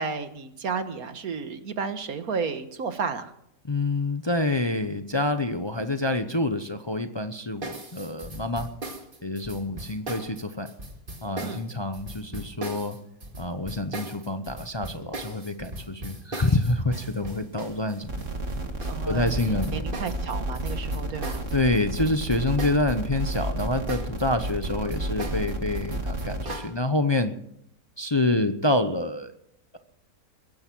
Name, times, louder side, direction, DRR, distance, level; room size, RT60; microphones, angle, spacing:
voice 1, 0.0-3.3 11.4-11.6 18.9-21.5, right 5 dB, 80° right, 9 dB, 1.8 m, -32 dB
voice 2, 3.7-8.7 9.2-10.7 11.2-13.0 13.4-18.2 19.1-19.9 21.5-27.3 28.0-29.3, left 2 dB, 25° left, 8 dB, 0.7 m, -27 dB
sound 1, 7.6-22.9 23.2-26.7, right 2 dB, 35° right, 2.3 m, -38 dB
sound 2, 18.0-26.4, right 1 dB, 55° right, 2.5 m, -31 dB
22.0 x 10.5 x 6.2 m, 0.74 s
omnidirectional pair, 1.5 m